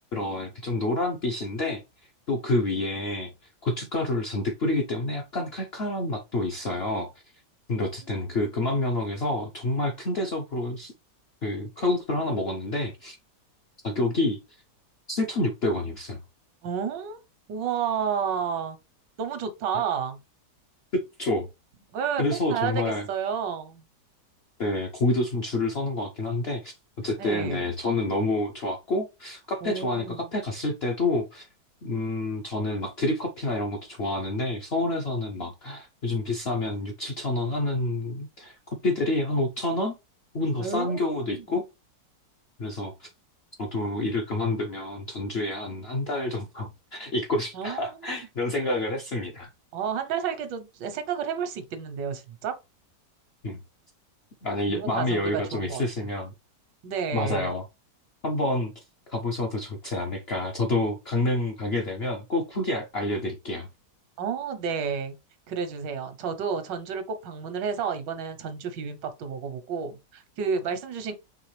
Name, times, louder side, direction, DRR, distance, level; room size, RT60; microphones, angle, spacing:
voice 1, 0.1-1.8 2.3-3.3 3.6-7.1 7.7-10.9 11.4-13.2 13.8-14.4 15.1-16.2 19.7-19.8 20.9-21.5 22.2-23.1 24.6-31.5 31.8-38.6 38.8-39.9 40.3-41.6 42.6-43.1 43.6-49.5 53.4-53.6 54.4-56.3 57.1-57.6 58.2-58.7 59.1-63.7, left 2 dB, 60° left, 0.6 m, -28 dB
voice 2, 8.1-8.5 16.6-17.2 17.5-18.8 19.2-20.2 21.9-23.8 27.2-27.6 29.6-30.3 40.6-41.4 47.5-47.9 49.7-52.6 54.7-55.8 56.8-57.5 64.2-65.2 65.5-71.1, right 6 dB, 85° right, 1.5 m, -31 dB
4.9 x 3.1 x 3.1 m
omnidirectional pair, 1.9 m